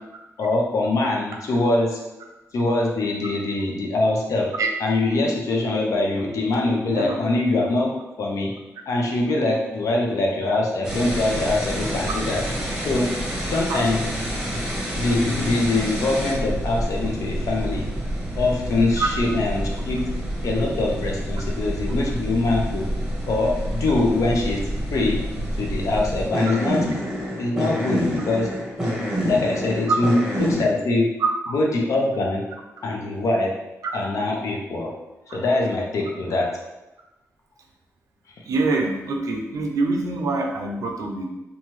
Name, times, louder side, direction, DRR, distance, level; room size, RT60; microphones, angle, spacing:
voice 1, 0.4-2.0 2.5-4.5 4.8-7.9 8.2-8.5 8.9-12.4 12.8-13.1 13.5-14.0 15.0-17.9 18.4-20.0 20.4-22.9 23.3-24.6 24.9-25.2 25.6-26.8 27.4-28.5 29.2-31.1 31.5-32.4 32.8-33.5 33.9-34.9 35.3-36.6, left 2 dB, 70° left, 0 dB, 0.6 m, -23 dB
sound 1, 10.8-30.7, equal, 5° right, 0.8 m, -28 dB
voice 2, 38.5-41.3, right 3 dB, 80° right, 2 dB, 0.5 m, -24 dB
2.8 x 2.3 x 3.1 m, 1.0 s
wide cardioid pair, 110°, 6 cm